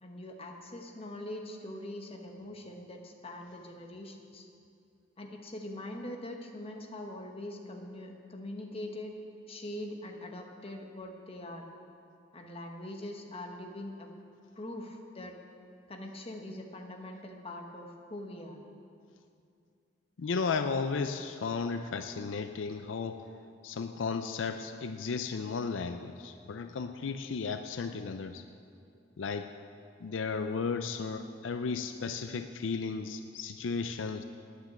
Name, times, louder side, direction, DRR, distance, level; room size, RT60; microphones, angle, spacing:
voice 1, 0.0-4.5 5.2-9.1 9.5-11.7 12.3-14.1 14.6-15.4 15.9-18.6, left 1 dB, 30° left, 2 dB, 1.2 m, -42 dB
voice 2, 20.2-23.2 23.6-28.4 29.2-29.5 30.0-34.2, left 5 dB, 80° left, 8 dB, 0.5 m, -34 dB
9.7 x 8.9 x 7.7 m, 2.5 s
head